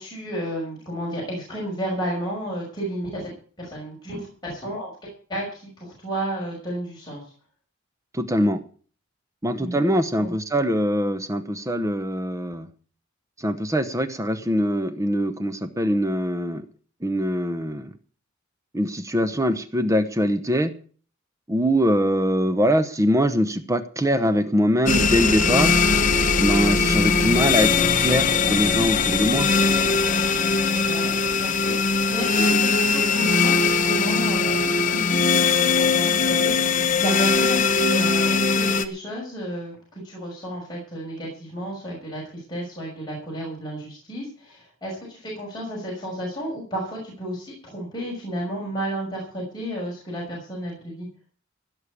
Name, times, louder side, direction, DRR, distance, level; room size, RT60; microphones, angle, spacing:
voice 1, 0.0-3.3 3.6-7.2 9.6-9.8 10.2-10.3 26.7-27.1 30.8-51.1, right 1 dB, 20° left, -4 dB, 6.0 m, -32 dB
voice 2, 8.1-8.6 9.4-12.7 13.4-16.6 17.0-17.9 18.7-20.7 21.5-25.8 26.4-29.5, equal, 15° right, 11 dB, 0.9 m, -23 dB
sound 1, 24.9-38.8, left 4 dB, 40° left, 1.1 m, -20 dB
16.5 x 6.4 x 8.4 m, 0.44 s
head